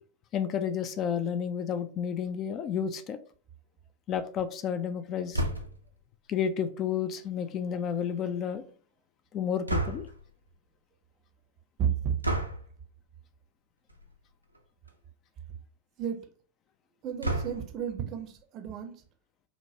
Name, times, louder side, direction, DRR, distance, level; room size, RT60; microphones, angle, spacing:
voice 1, 0.3-3.2 4.1-5.4 6.3-8.6 9.3-10.1, left 8 dB, 30° left, 11 dB, 0.3 m, -31 dB
sound 1, 5.3-5.9 9.7-10.3 12.2-12.7 13.9-14.1 14.5-14.6 14.9-15.0 17.2-17.8, right 1 dB, 85° right, 0.5 m, -31 dB
voice 2, 11.8-12.1 16.0-16.2 17.0-19.0, right 8 dB, 35° right, 7 dB, 0.6 m, -32 dB
4.9 x 2.1 x 2.7 m, 0.43 s
figure-of-eight pair, 90°, 0 cm